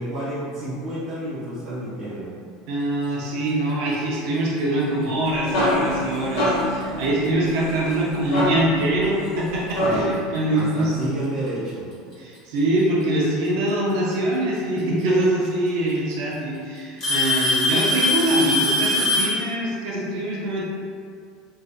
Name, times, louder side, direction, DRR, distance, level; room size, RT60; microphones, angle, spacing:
voice 1, 0.0-2.3 9.8-10.2 10.5-11.9, right 1 dB, 15° right, -11 dB, 0.5 m, -30 dB
voice 2, 2.7-11.0 12.2-20.7, right 1 dB, 60° right, -4 dB, 0.6 m, -24 dB
sound 1, 5.0-10.3, left 1 dB, 80° left, 1.0 m, -26 dB
Alarm / Tick-tock, 5.5-5.7 6.6-6.7 7.5-7.6 9.2-9.3 10.6-10.7 11.9-12.4 14.1-14.2 15.4-15.5 15.9-16.3 17.0-19.4, left 1 dB, 25° left, 0.8 m, -22 dB
3.2 x 2.7 x 2.4 m, 2.2 s
cardioid pair, 180°, 2 cm